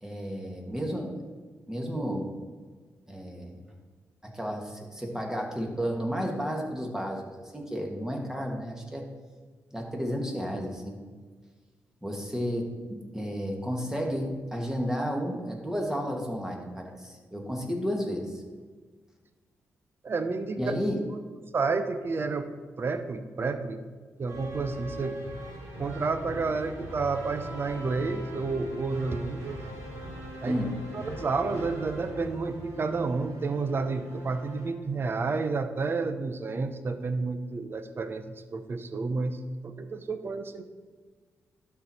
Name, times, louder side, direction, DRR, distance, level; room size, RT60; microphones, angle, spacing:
voice 1, 0.0-1.1 1.7-2.3 3.1-3.7 4.2-9.1 9.7-11.0 12.0-18.4 20.6-21.0 30.5-30.8, equal, 10° right, 1 dB, 1.8 m, -32 dB
voice 2, 20.0-20.7 21.5-22.5 22.8-23.8 24.2-25.2 25.8-29.6 30.4-30.6 30.9-39.4 39.6-40.6, right 4 dB, 45° right, 10 dB, 0.7 m, -30 dB
sound 1, 24.3-34.8, equal, 90° right, 2.4 m, -41 dB
12.0 x 4.6 x 4.3 m, 1.4 s
cardioid pair, 70°, 5 cm